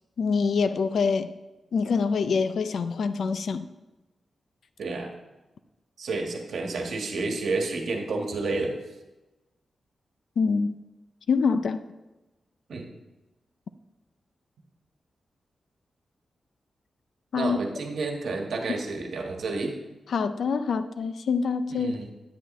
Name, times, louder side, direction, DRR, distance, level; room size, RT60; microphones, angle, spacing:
voice 1, 0.2-1.3 1.7-3.7 10.4-10.8 11.3-11.8 17.3-17.6 20.1-21.9, left 5 dB, 75° left, 0.4 m, -25 dB
voice 2, 4.8-5.1 6.0-8.8 12.7-12.9 17.4-19.8 21.7-22.1, right 3 dB, 75° right, 1.4 m, -30 dB
10.0 x 9.2 x 3.1 m
wide cardioid pair, 115°, 0 cm